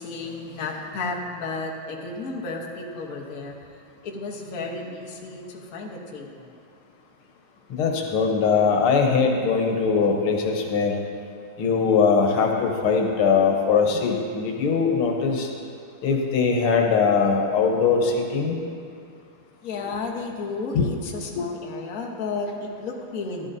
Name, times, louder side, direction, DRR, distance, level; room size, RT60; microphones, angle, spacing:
voice 1, 0.0-3.5 4.0-6.5 17.8-17.9 19.6-23.5, left 3 dB, 50° left, -2 dB, 1.4 m, -33 dB
voice 2, 7.7-11.0 11.6-15.5 16.0-18.6 20.8-20.9 21.4-21.5, left 5 dB, 85° left, 2 dB, 1.9 m, -21 dB
14.0 x 11.5 x 2.7 m, 2.3 s
omnidirectional pair, 2.3 m